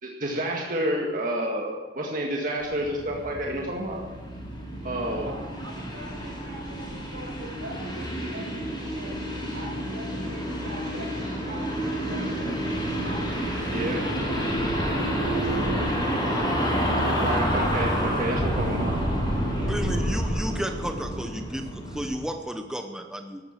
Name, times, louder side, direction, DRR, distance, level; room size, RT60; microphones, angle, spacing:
voice 1, 0.0-4.0 4.8-5.3 13.7-14.0 17.2-19.0, right 1 dB, 45° right, -1 dB, 1.9 m, -29 dB
sound 1, 2.6-22.2, equal, 25° left, 4.7 m, -29 dB
voice 2, 4.8-12.7 13.0-13.5 13.9-17.3 19.4-19.8, right 1 dB, 80° right, 1 dB, 5.2 m, -44 dB
voice 3, 19.7-23.4, equal, 5° right, 4 dB, 0.9 m, -33 dB
14.0 x 12.0 x 7.5 m, 1.4 s
head